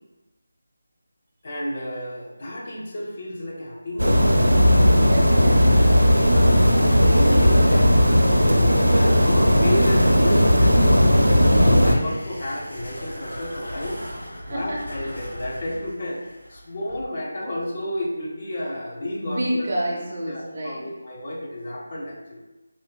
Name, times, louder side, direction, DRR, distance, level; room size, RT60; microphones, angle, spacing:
voice 1, 1.4-4.3 5.9-7.9 8.9-14.0 14.5-19.7 20.3-22.4, left 1 dB, 35° left, -3 dB, 0.7 m, -31 dB
sound 1, 4.0-12.0, equal, 90° right, 0.4 m, -16 dB
voice 2, 5.0-5.8 14.5-15.1 19.1-20.9, right 1 dB, 40° right, -2 dB, 0.6 m, -29 dB
sound 2, 11.8-17.1, equal, 70° left, 1.0 m, -38 dB
3.8 x 2.9 x 2.2 m, 1.1 s
figure-of-eight pair, 160°, 0 cm